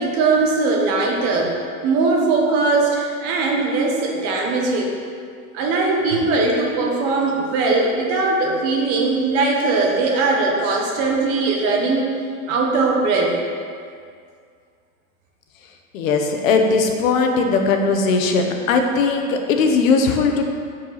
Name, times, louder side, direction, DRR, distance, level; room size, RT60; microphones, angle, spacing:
voice 1, 0.0-1.5 1.8-4.9 5.5-12.1 12.5-13.4, right 3 dB, 35° right, 0 dB, 1.1 m, -20 dB
voice 2, 15.9-20.5, left 4 dB, 75° left, 4 dB, 1.1 m, -19 dB
7.4 x 4.6 x 5.8 m, 2.2 s
supercardioid pair, 175°, 41 cm